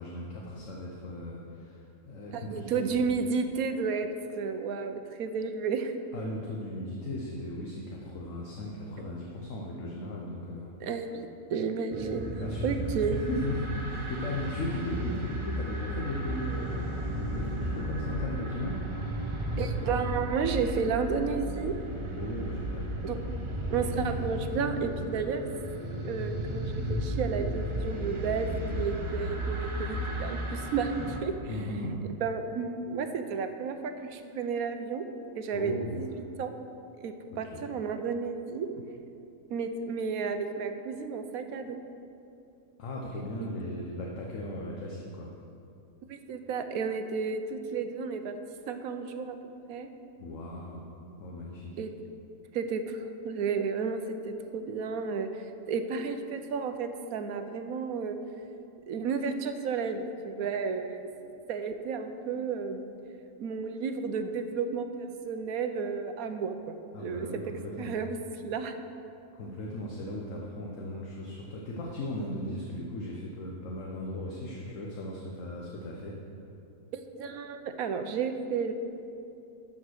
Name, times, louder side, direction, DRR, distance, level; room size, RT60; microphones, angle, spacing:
voice 1, 0.0-2.8 6.1-10.7 12.4-18.8 22.1-22.9 31.5-32.0 35.5-36.0 37.5-37.7 42.8-45.3 50.2-50.9 51.2-51.7 66.9-67.9 69.3-76.1, left 1 dB, 60° left, -2 dB, 1.3 m, -37 dB
voice 2, 2.3-4.1 4.3-5.9 10.8-13.3 19.6-21.7 23.0-23.2 23.7-25.4 26.0-30.9 31.2-31.4 32.2-35.0 35.4-36.5 37.0-38.7 39.5-41.8 46.1-48.3 48.7-49.3 49.7-49.9 51.8-51.9 52.5-54.0 54.3-58.2 58.9-62.9 63.4-67.3 67.8-68.2 68.4-68.8 76.9-78.7, right 5 dB, 75° right, 8 dB, 1.1 m, -32 dB
sound 1, 11.9-31.2, right 1 dB, 30° right, 0.6 m, -34 dB
12.5 x 5.0 x 6.3 m, 2.7 s
omnidirectional pair, 1.6 m